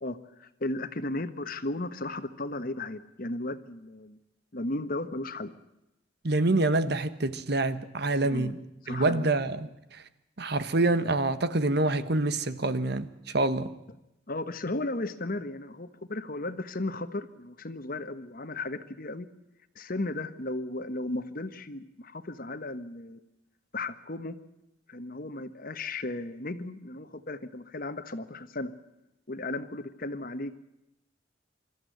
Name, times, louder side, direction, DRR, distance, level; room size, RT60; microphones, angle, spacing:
voice 1, 0.0-4.2 4.5-5.5 8.2-8.5 8.8-9.3 14.3-19.3 19.7-23.2 23.7-24.4 24.9-28.7 29.3-30.6, left 2 dB, 50° left, 11 dB, 1.3 m, -35 dB
voice 2, 6.2-8.6 8.9-9.7 10.4-13.7, right 2 dB, 60° right, 12 dB, 1.3 m, -26 dB
25.5 x 14.0 x 9.3 m, 0.90 s
head